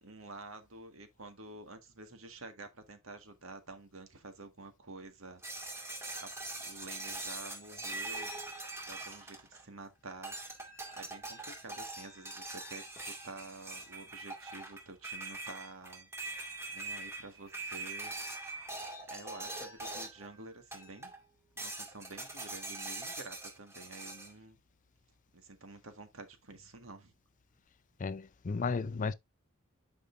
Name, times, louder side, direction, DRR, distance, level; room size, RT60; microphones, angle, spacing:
voice 1, 0.0-5.6 6.2-6.3 6.6-8.3 8.8-10.4 11.0-16.1 16.7-18.1 19.1-21.1 21.5-24.6 25.3-27.1, right 3 dB, 70° right, 1.7 m, -49 dB
sound 1, 5.4-9.8 10.2-20.3 20.7-21.2 21.6-24.3, right 2 dB, 10° right, 2.1 m, -43 dB
voice 2, 28.0-29.1, left 4 dB, 40° left, 0.4 m, -34 dB
10.0 x 5.3 x 2.6 m
head